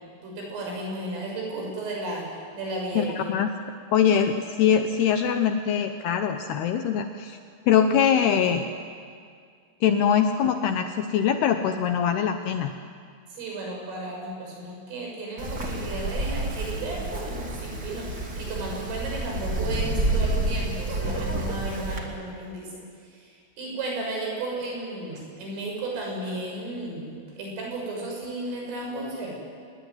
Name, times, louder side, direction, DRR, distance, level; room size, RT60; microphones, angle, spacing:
voice 1, 0.2-2.3 2.5-3.3 13.3-22.8 23.1-29.4, right 2 dB, 80° right, -1 dB, 9.2 m, -34 dB
voice 2, 2.9-3.5 3.9-7.4 7.7-8.6 9.8-12.7, left 8 dB, 75° left, 6 dB, 2.5 m, -23 dB
Wind, 15.4-22.0, right 1 dB, 30° right, 2.3 m, -29 dB
26.5 x 21.0 x 9.7 m, 2.2 s
omnidirectional pair, 5.7 m